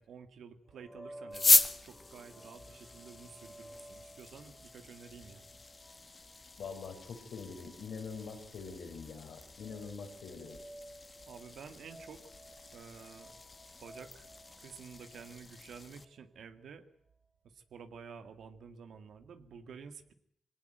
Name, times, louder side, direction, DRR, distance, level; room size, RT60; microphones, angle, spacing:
voice 1, 0.0-5.5 11.3-12.3 12.7-13.3 13.8-14.3 14.6-16.9 17.4-20.1, right 6 dB, 85° right, 9 dB, 2.0 m, -51 dB
sound 1, 0.7-16.3, right 1 dB, ahead, 3.1 m, -55 dB
sound 2, 1.3-16.0, left 3 dB, 35° left, 1.5 m, -36 dB
voice 2, 6.6-10.6, left 5 dB, 85° left, 5 dB, 4.8 m, -44 dB
22.0 x 18.5 x 9.3 m, 0.69 s
cardioid pair, 70°, 0 cm